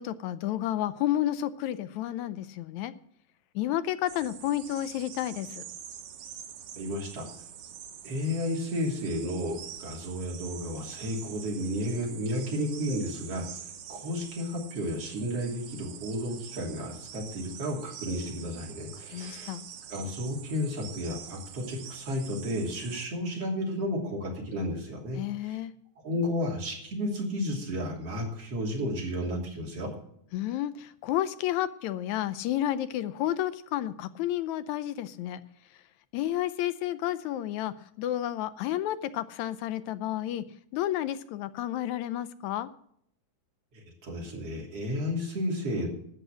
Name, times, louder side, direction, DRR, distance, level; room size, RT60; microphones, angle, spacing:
voice 1, 0.0-2.9 3.6-5.7 19.1-19.6 25.2-25.7 30.3-35.4 36.1-40.4 40.7-42.7, left 12 dB, 80° left, 13 dB, 2.0 m, -31 dB
sound 1, 4.1-23.1, right 8 dB, 90° right, 2.6 m, -45 dB
voice 2, 6.8-7.3 8.0-13.6 13.9-19.5 19.9-25.6 26.0-29.9 43.7-45.9, equal, 55° right, -2 dB, 4.0 m, -32 dB
13.0 x 8.9 x 6.2 m, 0.67 s
omnidirectional pair, 3.4 m